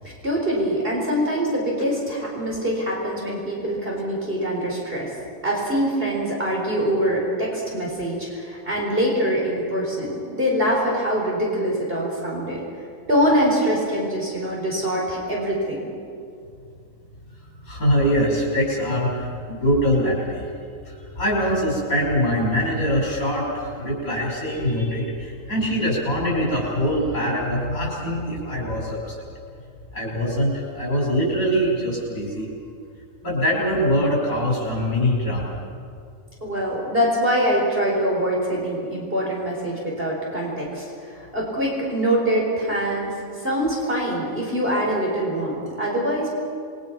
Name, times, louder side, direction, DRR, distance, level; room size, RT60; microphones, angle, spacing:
voice 1, 0.0-5.1 5.4-12.6 13.1-15.9 36.4-43.1 43.4-46.3, equal, 40° right, -3 dB, 4.9 m, -24 dB
voice 2, 17.6-20.5 20.9-29.2 29.9-32.5 33.2-35.6, equal, 80° left, -4 dB, 5.8 m, -23 dB
28.0 x 21.5 x 6.0 m, 2.4 s
omnidirectional pair, 1.4 m